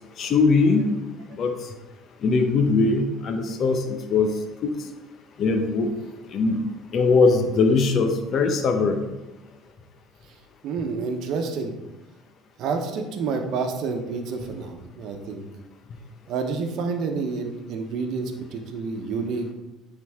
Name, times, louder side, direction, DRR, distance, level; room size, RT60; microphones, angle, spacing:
voice 1, 0.2-0.9 1.4-1.5 2.2-4.3 4.6-4.7 5.4-5.9 6.3-6.6 6.9-9.0, left 4 dB, 50° left, 5 dB, 0.8 m, -20 dB
voice 2, 10.6-11.7 12.6-15.4 16.3-19.5, right 4 dB, 65° right, 5 dB, 1.0 m, -29 dB
9.2 x 3.8 x 3.6 m, 1.0 s
supercardioid pair, 100°, 0 cm